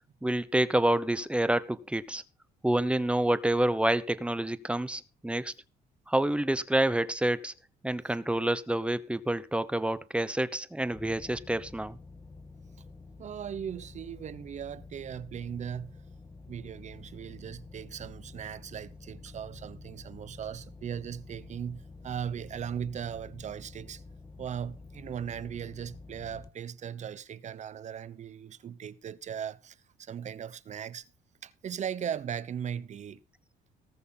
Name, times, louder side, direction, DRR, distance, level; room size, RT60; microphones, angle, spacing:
voice 1, 0.2-2.2 2.6-5.5 6.1-7.5 7.8-12.0, right 1 dB, 5° right, 0.9 m, -28 dB
sound 1, 10.9-26.5, left 3 dB, 20° left, 1.6 m, -49 dB
voice 2, 13.2-15.9 16.5-24.0 24.4-31.1 31.4-33.2, right 8 dB, 45° right, 0.9 m, -38 dB
19.0 x 6.4 x 5.8 m
cardioid pair, 110°, 17 cm